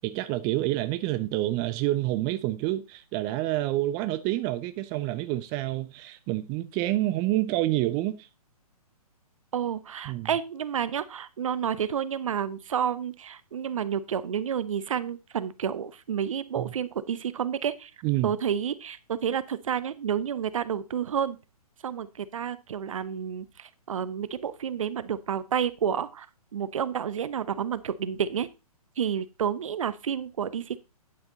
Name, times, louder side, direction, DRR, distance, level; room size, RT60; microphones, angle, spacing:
voice 1, 0.0-8.3 10.1-10.3 16.6-16.7 18.0-18.3, right 16 dB, 20° right, 0.4 m, -28 dB
voice 2, 9.5-17.9 18.2-21.4 21.8-26.3 26.5-28.5 29.0-30.8, right 8 dB, 55° right, 0.8 m, -30 dB
9.8 x 6.0 x 3.9 m
figure-of-eight pair, 125°, 20 cm